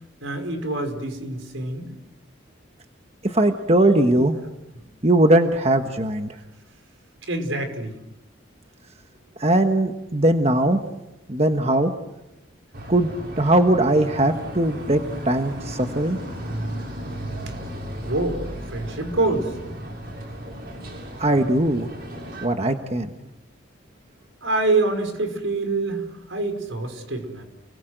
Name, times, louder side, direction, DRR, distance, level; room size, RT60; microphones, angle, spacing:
voice 1, 0.2-1.9 7.3-7.9 18.0-18.4 18.7-19.5 24.4-26.0 26.3-27.4, right 2 dB, 80° right, 7 dB, 5.1 m, -25 dB
voice 2, 3.2-4.4 5.0-6.3 9.4-10.8 11.3-11.9 12.9-13.1 13.4-16.2 21.2-21.9 22.4-23.1, right 1 dB, 30° right, 6 dB, 1.3 m, -20 dB
sound 1, 12.7-22.5, equal, 50° right, 7.2 m, -35 dB
29.5 x 21.0 x 7.9 m, 0.91 s
head